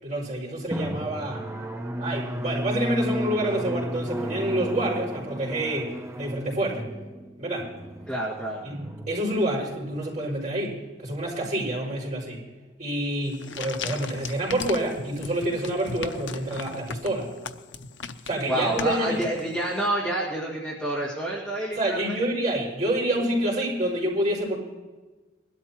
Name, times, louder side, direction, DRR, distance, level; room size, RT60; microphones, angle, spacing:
voice 1, 0.0-1.5 2.0-6.9 7.4-7.7 8.6-12.4 12.8-17.3 18.3-19.2 21.7-24.6, right 1 dB, 40° right, -4 dB, 5.8 m, -28 dB
Drum, 0.7-10.0, equal, 15° right, 0.6 m, -33 dB
voice 2, 8.1-8.6 18.5-22.2, right 1 dB, 5° left, -6 dB, 2.0 m, -28 dB
sound 1, 13.2-19.8, left 5 dB, 70° left, 0.7 m, -38 dB
21.0 x 12.5 x 3.1 m, 1.2 s
head